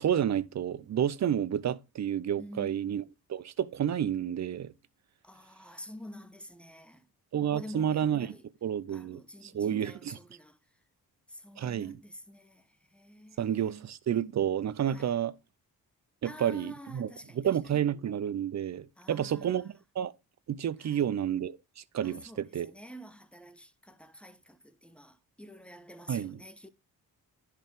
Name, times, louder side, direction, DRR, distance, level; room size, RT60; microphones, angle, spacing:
voice 1, 0.0-3.0 3.3-4.7 7.3-8.4 8.6-10.2 11.6-12.0 13.4-15.4 16.2-20.1 20.5-22.7 26.1-26.4, right 9 dB, 50° right, 0.6 m, -30 dB
voice 2, 2.4-3.0 5.2-7.0 7.4-8.4 8.9-10.6 11.3-12.6 12.9-13.8 14.9-15.1 16.2-17.4 19.0-19.7 20.8-21.0 22.0-26.7, equal, 5° left, 0.9 m, -48 dB
10.5 x 4.8 x 3.6 m
cardioid pair, 75°, 36 cm